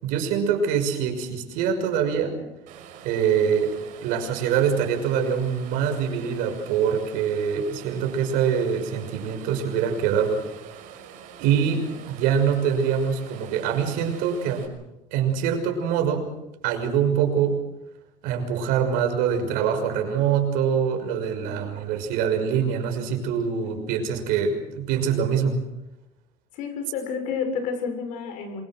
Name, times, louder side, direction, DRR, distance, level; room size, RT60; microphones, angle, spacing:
voice 1, 0.0-2.4 3.0-10.4 11.4-14.7 15.1-16.3 16.6-17.6 18.2-25.6, right 7 dB, 90° right, 5 dB, 6.0 m, -24 dB
sound 1, 2.7-14.7, right 8 dB, 65° right, 5.9 m, -45 dB
voice 2, 26.5-28.6, left 6 dB, 65° left, 6 dB, 7.1 m, -31 dB
27.5 x 23.5 x 6.4 m, 0.92 s
cardioid pair, 170°, 14 cm